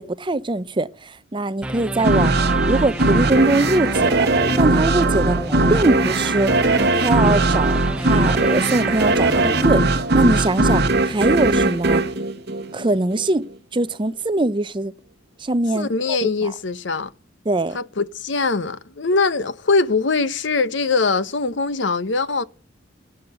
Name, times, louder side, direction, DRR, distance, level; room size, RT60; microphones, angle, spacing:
voice 1, 0.0-2.3 2.7-4.3 4.6-5.4 5.7-9.8 10.1-12.0 12.7-13.5 13.7-14.9 15.4-16.2 17.5-17.8, right 2 dB, 25° right, 0.6 m, -22 dB
sound 1, 1.6-10.7, right 1 dB, 5° right, 0.9 m, -30 dB
sound 2, 2.0-13.2, right 2 dB, 55° right, 1.3 m, -19 dB
voice 2, 15.7-17.1 17.7-22.4, left 4 dB, 70° left, 0.9 m, -22 dB
12.0 x 10.0 x 8.1 m
head